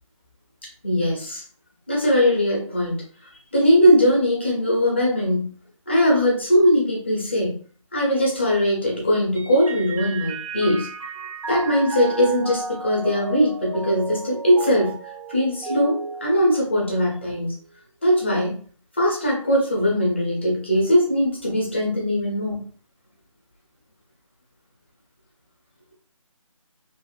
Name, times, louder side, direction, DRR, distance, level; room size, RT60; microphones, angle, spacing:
voice 1, 0.8-1.4 1.9-3.0 3.5-5.6 5.9-7.6 7.9-10.9 11.5-17.5 18.0-18.6 19.0-22.7, equal, 20° left, -2 dB, 0.4 m, -20 dB
Mallet percussion, 9.3-17.1, right 3 dB, 75° right, 0.4 m, -34 dB
2.5 x 2.2 x 2.3 m, 0.43 s
figure-of-eight pair, 160°, 18 cm